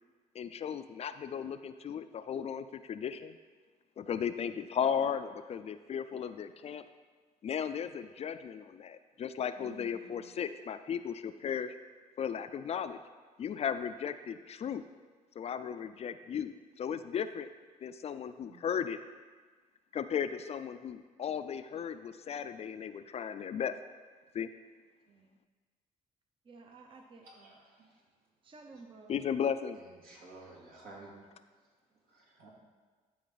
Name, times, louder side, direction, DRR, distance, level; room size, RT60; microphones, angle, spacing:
voice 1, 0.3-3.4 4.0-6.8 7.4-11.7 12.2-13.0 13.4-14.8 15.4-17.5 17.8-19.0 19.9-23.7 24.3-24.5 29.1-29.8, left 8 dB, 45° left, 11 dB, 0.4 m, -35 dB
voice 2, 9.6-10.4 18.4-18.7 25.1-25.4 26.4-27.6 28.4-29.4, right 4 dB, 35° right, 3 dB, 0.7 m, -54 dB
voice 3, 27.2-27.9 30.0-31.1 32.1-32.5, right 2 dB, 75° right, -3 dB, 2.3 m, -52 dB
11.5 x 4.5 x 4.0 m, 1.4 s
cardioid pair, 100°, 15 cm